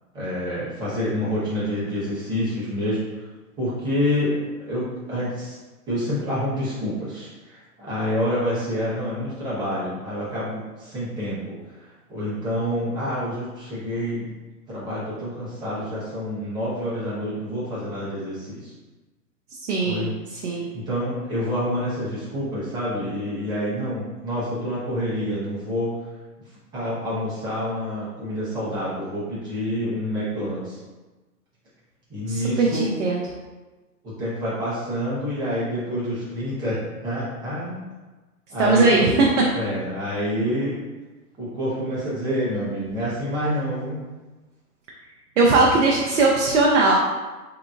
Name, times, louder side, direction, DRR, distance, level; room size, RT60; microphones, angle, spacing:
voice 1, 0.1-3.0 3.6-5.6 5.9-14.3 14.7-18.7 19.8-20.1 20.7-26.0 26.7-30.8 32.1-32.9 34.0-36.8 37.0-37.8 38.5-39.2 39.5-40.8 41.4-44.0, equal, 10° right, -9 dB, 0.8 m, -27 dB
voice 2, 19.6-20.7 32.3-33.2 38.6-39.3 45.4-47.0, right 3 dB, 50° right, -2 dB, 0.6 m, -19 dB
3.7 x 2.9 x 2.3 m, 1.2 s
hypercardioid pair, 130°, 48 cm